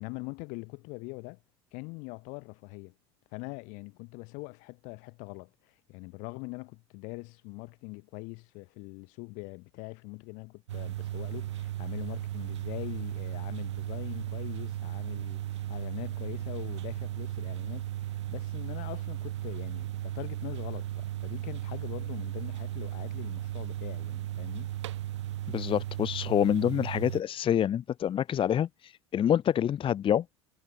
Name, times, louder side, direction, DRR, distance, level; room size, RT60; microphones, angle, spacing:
voice 1, 0.0-1.4 1.7-2.9 3.3-24.7, left 29 dB, 60° left, 3.7 m, -43 dB
sound 1, 10.7-27.2, right 13 dB, 75° right, 2.0 m, -36 dB
voice 2, 25.5-30.2, left 10 dB, 35° left, 1.0 m, -27 dB
hypercardioid pair, 75°, 15 cm